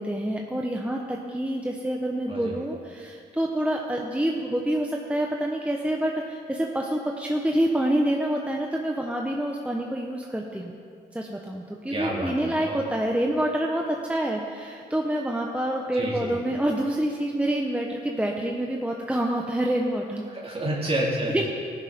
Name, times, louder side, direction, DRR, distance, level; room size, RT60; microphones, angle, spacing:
voice 1, 0.0-10.8 11.1-20.2 21.3-21.4, right 1 dB, 5° right, 0 dB, 1.0 m, -27 dB
voice 2, 11.9-12.8 15.9-16.3 20.3-21.5, right 1 dB, 35° right, -4 dB, 2.4 m, -29 dB
14.5 x 10.5 x 3.7 m, 2.3 s
cardioid pair, 65°, 18 cm